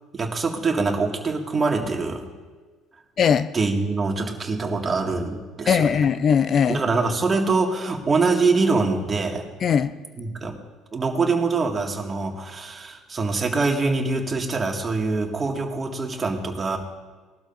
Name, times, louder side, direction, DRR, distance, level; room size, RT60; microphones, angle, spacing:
voice 1, 0.1-2.3 3.5-6.0 6.7-9.4 10.2-10.6 10.9-16.8, right 3 dB, 30° right, 2 dB, 2.0 m, -24 dB
voice 2, 3.2-3.5 5.7-6.8 9.6-9.9, left 7 dB, 50° left, 13 dB, 0.5 m, -19 dB
20.5 x 12.0 x 2.6 m, 1.4 s
hypercardioid pair, 60°, 0 cm